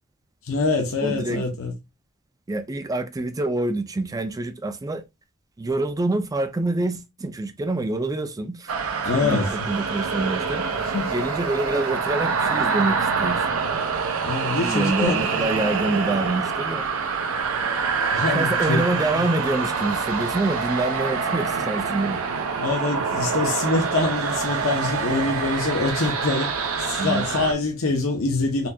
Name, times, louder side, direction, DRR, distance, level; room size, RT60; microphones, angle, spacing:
voice 1, 0.4-1.7 9.0-9.5 10.9-11.1 14.2-15.4 18.1-18.8 22.6-26.5 26.8-28.7, left 3 dB, 65° left, 0.8 m, -25 dB
voice 2, 1.0-1.4 2.5-5.0 5.6-8.7 9.1-13.5 14.6-16.8 18.3-22.2 27.0-27.3, right 2 dB, 15° right, 0.4 m, -26 dB
sound 1, 8.7-27.5, right 5 dB, 70° right, 0.6 m, -26 dB
4.2 x 2.3 x 2.7 m
head